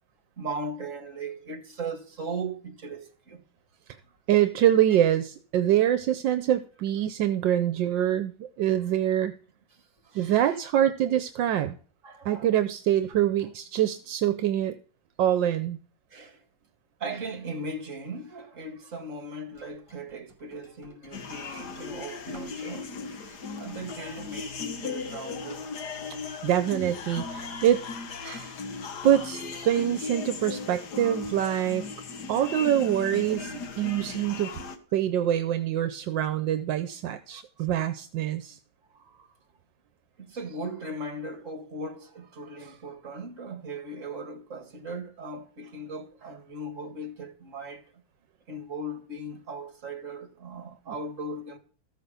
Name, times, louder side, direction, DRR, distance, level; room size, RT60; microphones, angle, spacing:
voice 1, 0.4-3.4 10.0-10.3 12.0-12.5 16.1-16.4 17.0-25.7 28.2-28.6 28.9-29.1 32.3-32.7 37.3-37.7 38.9-39.3 40.2-47.8 48.5-51.6, right 2 dB, 40° right, 2.3 m, -38 dB
voice 2, 4.3-9.3 10.1-11.7 12.2-14.7 15.2-15.8 26.4-27.8 29.0-31.8 32.3-34.6 34.9-38.6, right 11 dB, 80° right, 1.4 m, -25 dB
sound 1, 19.5-22.9 23.2-24.2, equal, 15° left, 4.6 m, -54 dB
sound 2, 21.1-34.8, left 4 dB, 60° left, 1.8 m, -37 dB
14.0 x 6.4 x 6.7 m
omnidirectional pair, 2.1 m